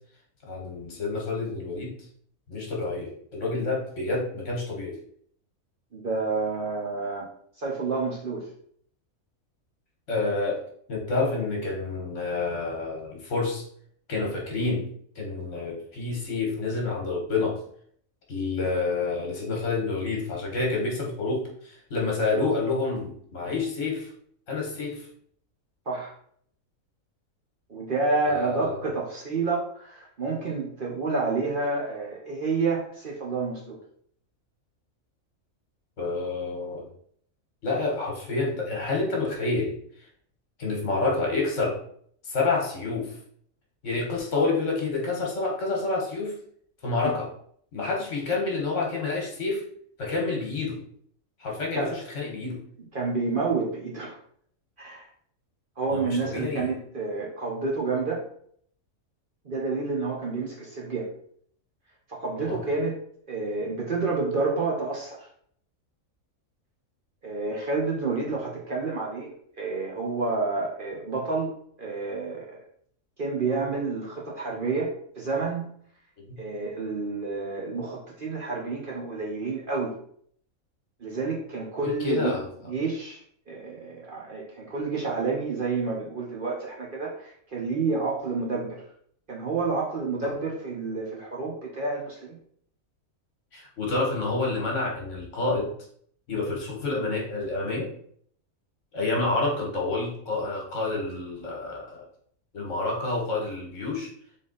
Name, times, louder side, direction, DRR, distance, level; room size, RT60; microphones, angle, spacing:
voice 1, 0.4-2.0 2.5-4.9 10.1-10.6 10.9-13.6 14.1-14.9 15.1-17.6 18.3-24.1 24.5-25.1 28.3-28.8 36.0-36.9 37.6-39.7 40.6-41.8 42.2-43.1 43.8-46.4 46.8-47.3 47.7-49.6 50.0-50.8 51.4-52.6 55.9-56.7 62.4-62.6 76.3-76.4 81.8-82.5 93.5-95.7 96.3-97.9 98.9-102.0 102.5-104.1, left 3 dB, 60° left, -2 dB, 1.5 m, -28 dB
voice 2, 5.9-7.3 7.6-8.5 25.9-26.1 27.7-33.8 47.0-47.1 51.7-51.9 52.9-54.2 54.8-55.1 55.8-58.2 59.4-61.1 62.1-63.0 63.3-65.3 67.2-71.5 71.8-72.6 73.2-74.9 75.2-75.7 76.4-79.9 81.0-82.4 82.7-83.2 83.5-88.8 89.3-92.4, right 4 dB, 45° right, -3 dB, 0.9 m, -29 dB
3.8 x 3.4 x 3.9 m, 0.63 s
omnidirectional pair, 1.4 m